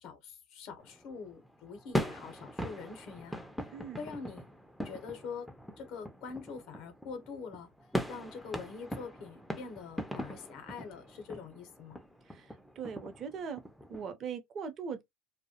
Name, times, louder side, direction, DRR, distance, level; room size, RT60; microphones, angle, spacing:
voice 1, 0.0-3.5 4.0-4.5 4.8-5.5 5.8-7.7 8.1-12.0, left 5 dB, 60° left, 0.6 m, -44 dB
sound 1, 0.8-14.1, equal, ahead, 0.4 m, -41 dB
voice 2, 3.7-4.0 12.3-12.5 12.8-13.6 13.9-15.0, right 6 dB, 40° right, 0.6 m, -40 dB
2.2 x 2.0 x 2.7 m
supercardioid pair, 95°, 0 cm